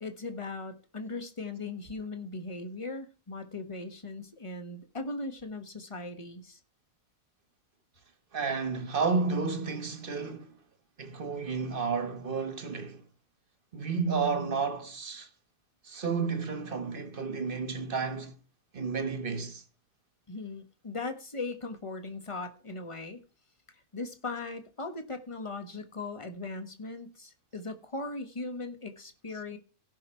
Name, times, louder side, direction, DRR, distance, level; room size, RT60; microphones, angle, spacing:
voice 1, 0.0-6.6 20.3-23.2 23.9-29.6, left 3 dB, 25° left, 1.4 m, -39 dB
voice 2, 8.3-10.6 11.0-13.0 13.7-15.3 15.8-18.3 18.7-19.6, right 5 dB, 40° right, 1.4 m, -31 dB
16.5 x 5.8 x 4.5 m
omnidirectional pair, 1.4 m